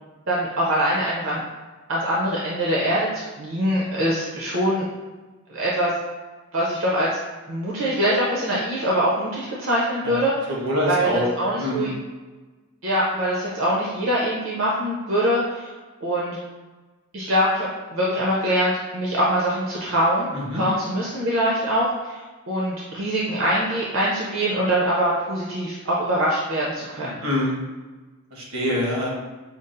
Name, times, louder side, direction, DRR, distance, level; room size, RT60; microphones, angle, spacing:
voice 1, 0.3-1.4 1.9-4.9 5.5-5.9 6.5-7.1 7.5-10.5 10.9-11.9 12.8-15.7 16.0-16.4 17.1-20.3 20.5-27.2, equal, 65° right, -5 dB, 0.6 m, -23 dB
voice 2, 10.0-11.3 11.6-11.9 20.3-20.6 27.2-27.6 28.3-29.1, left 1 dB, 85° right, -3 dB, 1.2 m, -25 dB
5.2 x 2.3 x 2.5 m, 1.2 s
head